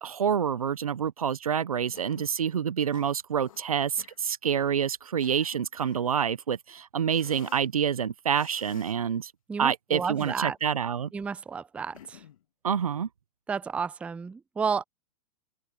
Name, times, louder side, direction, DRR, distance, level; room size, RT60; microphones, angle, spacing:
voice 1, 0.0-9.3 9.6-11.1 12.6-13.1, right 8 dB, 85° right, 1.0 m, -27 dB
Cough, 1.9-2.4 2.9-3.6 4.0-4.2 4.9-6.1 7.1-7.7 8.3-9.0 9.9-10.8 11.9-12.4, left 11 dB, 70° left, 2.6 m, -52 dB
voice 2, 9.5-10.6 11.1-12.2 13.5-14.8, right 5 dB, 5° right, 0.3 m, -31 dB
open air
hypercardioid pair, 115°, 18 cm